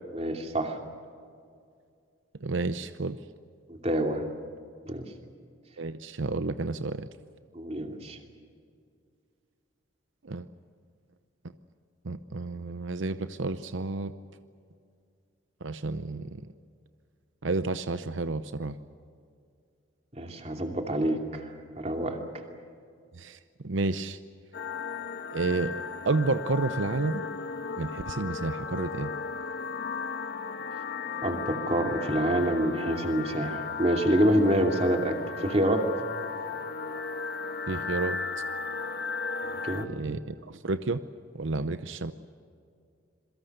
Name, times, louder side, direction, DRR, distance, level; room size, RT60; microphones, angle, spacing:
voice 1, 0.1-0.8 3.7-4.2 4.9-5.0 7.5-8.2 20.2-21.5 21.8-22.2 31.2-35.9 39.6-39.9, right 1 dB, 35° right, 3 dB, 2.7 m, -27 dB
voice 2, 2.4-3.2 5.8-7.1 10.2-10.5 12.0-14.1 15.6-16.4 17.4-18.8 23.1-23.4 23.6-24.2 25.3-27.3 27.8-29.1 37.7-38.2 39.9-41.0 41.3-42.1, right 3 dB, 85° right, 11 dB, 0.8 m, -30 dB
sound 1, 24.5-39.9, left 5 dB, 55° left, 1.3 m, -35 dB
27.0 x 23.0 x 6.7 m, 2.3 s
head